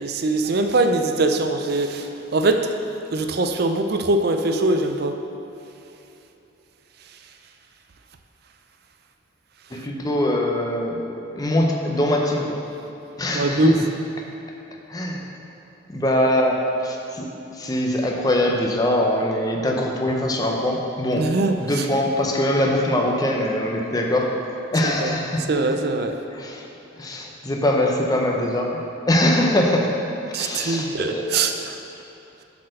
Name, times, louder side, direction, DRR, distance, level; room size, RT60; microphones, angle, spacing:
voice 1, 0.0-2.7 3.1-5.1 13.3-13.8 21.2-21.8 24.8-25.1 25.5-26.1 30.3-31.8, right 2 dB, 50° right, 6 dB, 0.5 m, -22 dB
voice 2, 9.7-11.0 11.3-12.6 13.2-13.9 14.9-15.2 15.9-21.3 21.6-24.3 24.7-25.5 26.3-26.7 27.0-30.0 30.3-31.3, left 1 dB, 20° left, 0 dB, 0.6 m, -22 dB
8.2 x 4.4 x 6.4 m, 3.0 s
head